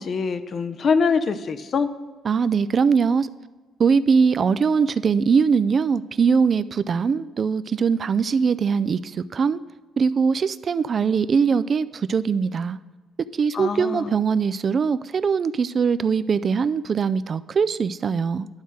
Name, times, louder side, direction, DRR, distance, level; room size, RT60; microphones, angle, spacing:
voice 1, 0.0-1.9 13.5-14.1, left 5 dB, 50° left, 12 dB, 0.6 m, -24 dB
voice 2, 2.2-3.3 3.8-9.6 10.0-12.8 13.4-18.5, right 5 dB, 45° right, 15 dB, 0.3 m, -21 dB
11.5 x 3.9 x 6.4 m, 1.3 s
cardioid pair, 90°, 0 cm